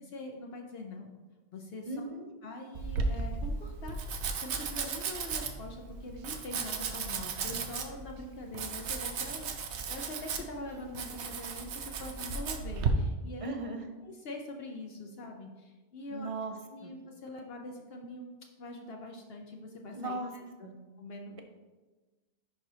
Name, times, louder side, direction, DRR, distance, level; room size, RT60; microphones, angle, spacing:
voice 1, 0.1-1.1 1.5-2.1 2.4-13.6 14.0-16.3 16.7-20.7 21.0-21.4, left 2 dB, 65° left, 2 dB, 0.9 m, -44 dB
voice 2, 1.9-2.3 13.4-13.9 16.1-16.9 19.9-20.3 20.6-20.8, right 2 dB, 35° right, 5 dB, 0.7 m, -38 dB
Domestic sounds home sounds, 2.7-12.9, right 5 dB, 80° right, 1.0 m, -35 dB
11.0 x 4.5 x 2.8 m, 1.2 s
omnidirectional pair, 1.1 m